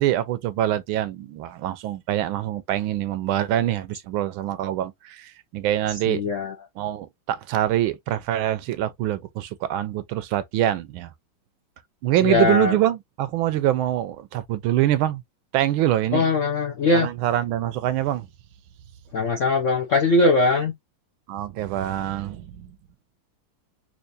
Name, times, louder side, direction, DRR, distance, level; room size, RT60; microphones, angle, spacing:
voice 1, 0.0-6.2 6.8-11.1 12.0-15.2 15.5-16.3 16.9-18.3 21.3-22.8, right 13 dB, 80° right, 1.4 m, -24 dB
voice 2, 6.1-6.5 12.2-12.8 16.1-17.1 19.1-20.7, left 3 dB, 65° left, 0.7 m, -21 dB
4.4 x 2.6 x 2.6 m
omnidirectional pair, 2.2 m